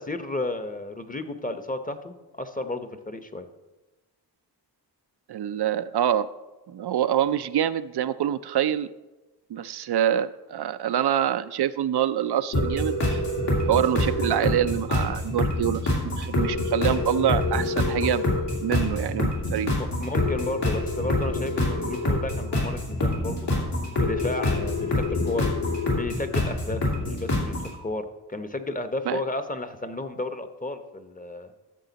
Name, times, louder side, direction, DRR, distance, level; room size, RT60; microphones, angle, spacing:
voice 1, 0.0-3.5 19.8-23.5 24.0-25.5 25.9-31.5, left 2 dB, 20° left, 9 dB, 0.9 m, -33 dB
voice 2, 5.3-6.3 6.7-8.9 9.5-13.2 13.7-18.3 18.6-19.7 29.1-29.2, right 10 dB, 70° right, 12 dB, 0.5 m, -25 dB
sound 1, 12.5-27.7, left 1 dB, 80° left, 3.0 m, -26 dB
14.0 x 6.7 x 4.0 m, 1.1 s
cardioid pair, 70°, 41 cm